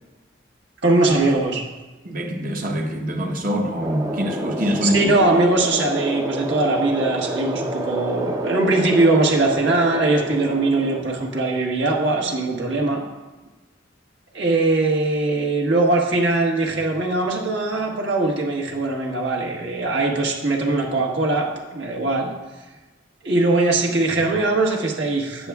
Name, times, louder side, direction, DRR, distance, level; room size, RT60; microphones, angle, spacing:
voice 1, 0.8-1.7 4.8-13.0 14.3-22.3 23.2-25.5, right 2 dB, 70° right, -1 dB, 1.4 m, -21 dB
voice 2, 2.0-5.1, equal, 50° right, 3 dB, 1.0 m, -24 dB
sound 1, 3.8-11.0, right 1 dB, 20° right, 0.6 m, -29 dB
11.5 x 8.6 x 2.3 m, 1.2 s
head